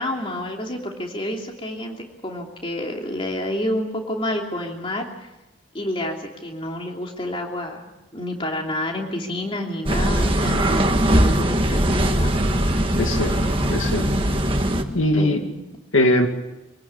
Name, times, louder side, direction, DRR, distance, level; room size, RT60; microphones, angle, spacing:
voice 1, 0.0-5.1 5.7-12.8 15.1-15.6, left 1 dB, 25° left, 1 dB, 3.0 m, -29 dB
sound 1, 9.9-14.8, right 1 dB, 25° right, 1.7 m, -20 dB
voice 2, 13.0-14.1 14.9-15.4 15.9-16.3, left 1 dB, 85° left, 5 dB, 2.4 m, -21 dB
24.5 x 18.0 x 8.5 m, 1.0 s
head